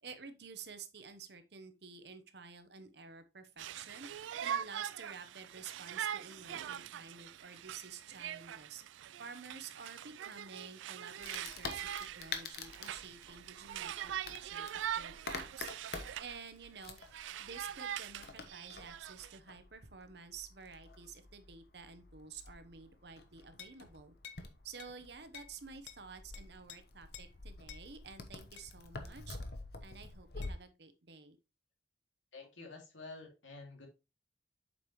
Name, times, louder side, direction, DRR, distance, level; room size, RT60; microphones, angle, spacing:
voice 1, 0.0-8.8 9.2-11.9 12.2-15.7 16.2-29.4 29.8-31.4, right 5 dB, 60° right, 1.0 m, -51 dB
Conversation, 3.6-16.4 16.7-19.4, right 10 dB, 80° right, 0.3 m, -43 dB
Wood, 11.2-30.5, left 3 dB, 55° left, 1.0 m, -48 dB
sound 1, 23.6-23.8 24.2-24.5 24.8-25.0 25.3-25.6 25.9-26.0 26.3-26.8 27.1-27.3 27.7-27.9 28.6-28.7 30.4-30.6, left 9 dB, 70° left, 0.7 m, -51 dB
voice 2, 32.3-33.9, left 3 dB, 85° left, 2.4 m, -49 dB
7.9 x 5.4 x 3.0 m
head